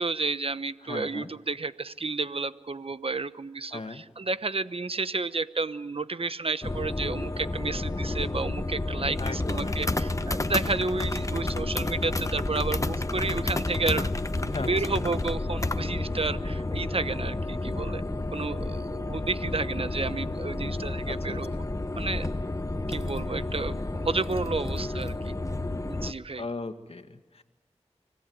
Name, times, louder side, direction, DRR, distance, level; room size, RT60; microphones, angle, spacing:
voice 1, 0.0-18.0 18.3-21.5 21.9-22.3 22.9-25.3 25.8-26.5, right 3 dB, 50° right, 14 dB, 1.0 m, -31 dB
voice 2, 0.8-1.3 3.7-4.0 9.2-9.9 14.5-15.0 21.1-21.6 26.4-27.4, left 3 dB, 55° left, 6 dB, 1.9 m, -38 dB
sound 1, 6.6-26.1, left 2 dB, 25° left, 1.0 m, -30 dB
25.5 x 17.0 x 9.4 m, 1.2 s
cardioid pair, 40°, 12 cm